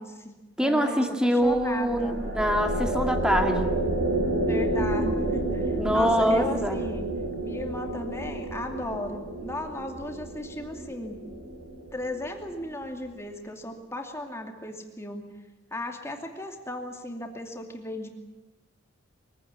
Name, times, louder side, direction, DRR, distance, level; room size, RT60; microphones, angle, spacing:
voice 1, 0.0-2.2 4.5-7.1 7.4-11.2 11.9-15.3 15.7-18.1, left 1 dB, 15° left, 3 dB, 2.6 m, -36 dB
voice 2, 0.6-3.7 5.8-6.8, equal, 5° right, 5 dB, 2.1 m, -24 dB
sound 1, 1.4-12.9, right 1 dB, 45° right, 5.8 m, -30 dB
23.5 x 16.0 x 9.8 m, 1.1 s
head